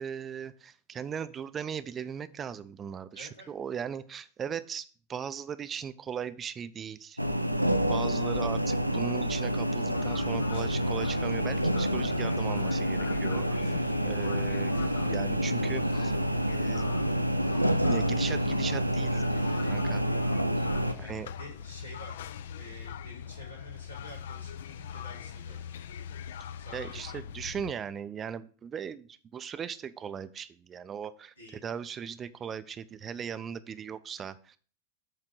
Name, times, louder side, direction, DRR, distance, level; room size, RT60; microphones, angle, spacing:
voice 1, 0.0-7.2 7.9-13.7 14.1-14.7 15.0-16.1 16.5-16.8 17.8-19.2 19.6-20.0 21.0-21.3 26.7-34.6, right 7 dB, 25° right, 13 dB, 0.4 m, -38 dB
voice 2, 3.1-3.5 13.6-13.9 20.8-22.1 22.5-25.7 26.6-27.3 31.4-31.6, left 1 dB, 85° left, -4 dB, 3.4 m, -49 dB
sound 1, 7.2-20.9, equal, 90° right, 0.4 m, -28 dB
sound 2, 9.9-27.7, left 8 dB, 60° left, 0.4 m, -42 dB
7.8 x 3.7 x 6.0 m, 0.41 s
figure-of-eight pair, 90°, 0 cm